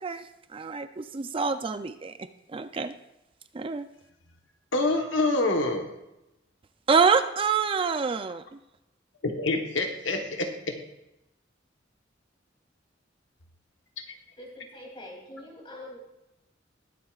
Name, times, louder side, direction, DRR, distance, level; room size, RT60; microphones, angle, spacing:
voice 1, 0.0-2.1 2.5-2.9 3.5-3.9 6.9-8.4, right 5 dB, 30° right, 10 dB, 0.4 m, -26 dB
voice 2, 4.7-5.9 9.2-10.8, left 2 dB, 80° left, 3 dB, 1.2 m, -26 dB
voice 3, 14.4-16.0, left 1 dB, 30° left, -1 dB, 2.9 m, -44 dB
21.0 x 7.7 x 2.4 m, 0.92 s
head